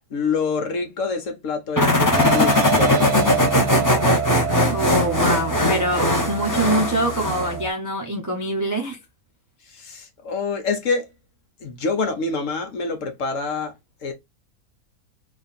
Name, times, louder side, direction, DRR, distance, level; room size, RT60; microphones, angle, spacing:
voice 1, 0.1-3.2 9.6-11.1 11.6-13.7 14.0-14.1, left 4 dB, 60° left, 1.2 m, -26 dB
sound 1, 1.8-7.6, left 1 dB, 20° left, 0.6 m, -20 dB
sound 2, 2.1-7.7, right 6 dB, 80° right, 1.1 m, -28 dB
voice 2, 4.7-9.0, right 1 dB, 25° right, 0.4 m, -24 dB
3.7 x 2.5 x 4.0 m
omnidirectional pair, 1.6 m